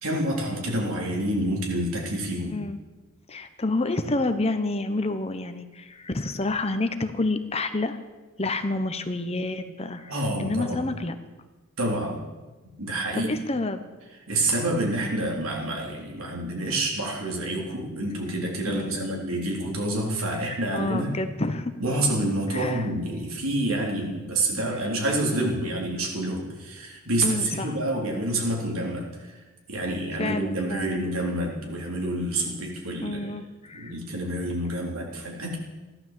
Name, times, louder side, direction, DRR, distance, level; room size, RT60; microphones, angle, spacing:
voice 1, 0.0-2.6 10.1-11.0 11.8-12.2 12.8-13.3 14.3-21.1 21.8-29.3 29.7-33.2 33.7-35.6, right 1 dB, 75° right, 0 dB, 3.7 m, -28 dB
voice 2, 3.3-8.0 8.4-10.1 10.4-11.2 13.1-13.8 18.6-19.2 20.7-21.7 22.5-22.9 27.2-27.7 30.2-31.0 33.0-33.9, left 2 dB, 30° left, 9 dB, 0.9 m, -29 dB
15.0 x 12.0 x 7.6 m, 1.2 s
head